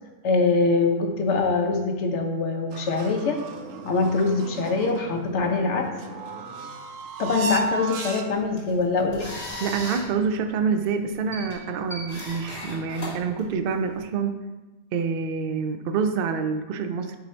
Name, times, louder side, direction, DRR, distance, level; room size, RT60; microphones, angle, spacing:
voice 1, 0.2-3.4 3.8-5.9 7.2-9.3, left 4 dB, 65° left, 3 dB, 1.1 m, -23 dB
sound 1, 2.7-8.6, right 3 dB, 90° right, 1.0 m, -34 dB
dispensive machine, 8.3-14.0, left 1 dB, 30° left, 1.7 m, -38 dB
voice 2, 9.6-14.4 14.9-17.2, right 5 dB, 60° right, 7 dB, 0.6 m, -27 dB
8.0 x 2.8 x 4.4 m, 1.1 s
omnidirectional pair, 1.3 m